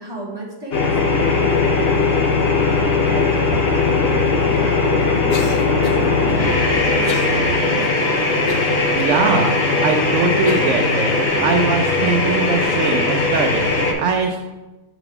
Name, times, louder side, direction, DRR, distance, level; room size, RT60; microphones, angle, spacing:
voice 1, 0.0-8.2, right 2 dB, 15° right, -5 dB, 1.5 m, -34 dB
sound 1, 0.7-13.9, left 3 dB, 45° left, 0.9 m, -18 dB
Cough, 5.3-6.1 7.1-7.4 7.8-7.9 8.5-9.1 9.7-9.8 10.5-10.8, left 3 dB, 75° left, 1.3 m, -28 dB
voice 2, 8.6-14.4, right 4 dB, 65° right, 4 dB, 0.7 m, -22 dB
6.7 x 4.8 x 3.5 m, 1.1 s
omnidirectional pair, 1.6 m